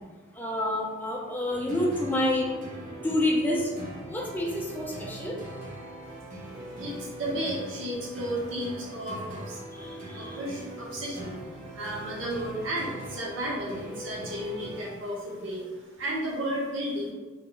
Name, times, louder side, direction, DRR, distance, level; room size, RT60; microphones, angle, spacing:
voice 1, 0.3-2.5 3.0-3.7 4.1-5.4 9.7-10.4, left 1 dB, 10° left, -2 dB, 0.4 m, -28 dB
sound 1, 1.5-15.3, right 1 dB, 40° right, 0.6 m, -41 dB
voice 2, 6.7-9.6 9.9-17.1, right 1 dB, 70° right, -4 dB, 0.8 m, -33 dB
2.2 x 2.1 x 3.7 m, 1.3 s
head